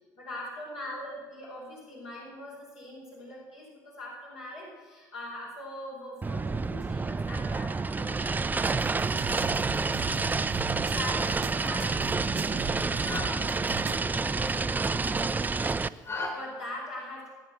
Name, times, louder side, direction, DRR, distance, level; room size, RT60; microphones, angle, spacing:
voice 1, 0.2-17.3, left 1 dB, 65° left, -5 dB, 4.7 m, -43 dB
sound 1, 6.2-15.9, right 4 dB, 15° right, 0.4 m, -29 dB
sound 2, 8.6-14.0, right 12 dB, 60° right, 0.6 m, -40 dB
sound 3, 10.1-16.3, left 3 dB, 30° left, 4.5 m, -42 dB
18.5 x 8.7 x 7.0 m, 1.4 s
hypercardioid pair, 60°, 11 cm